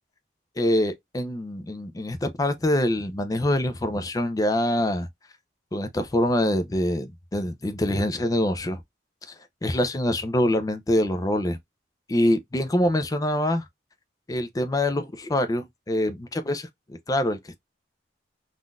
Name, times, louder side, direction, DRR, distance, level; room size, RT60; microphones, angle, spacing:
voice 1, 0.6-5.1 5.7-8.8 9.3-9.4 9.6-11.6 12.1-13.6 14.3-17.6, left 1 dB, 20° left, 0.5 m, -25 dB
3.7 x 2.5 x 2.2 m
head